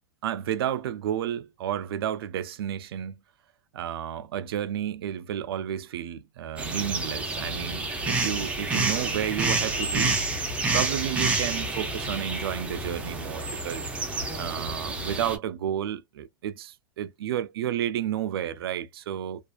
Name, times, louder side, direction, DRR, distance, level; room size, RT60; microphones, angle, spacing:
voice 1, 0.2-3.2 3.7-10.3 10.7-13.9 14.4-19.5, right 10 dB, 85° right, 0.4 m, -31 dB
sound 1, 6.6-15.4, right 3 dB, 10° right, 0.5 m, -29 dB
2.4 x 2.4 x 2.2 m
supercardioid pair, 160°, 12 cm